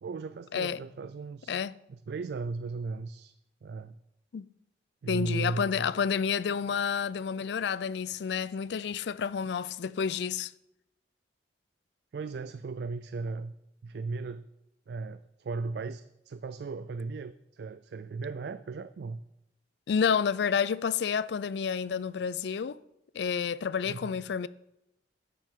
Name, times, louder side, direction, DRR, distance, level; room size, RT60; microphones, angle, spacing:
voice 1, 0.0-1.6 1.9-3.3 3.6-4.0 5.0-5.9 12.1-13.5 13.8-14.5 14.9-19.2 23.8-24.2, right 3 dB, 60° right, 0.3 m, -36 dB
voice 2, 5.1-10.5 19.9-22.8 23.1-24.5, left 6 dB, 65° left, 0.4 m, -29 dB
12.0 x 9.2 x 3.7 m
head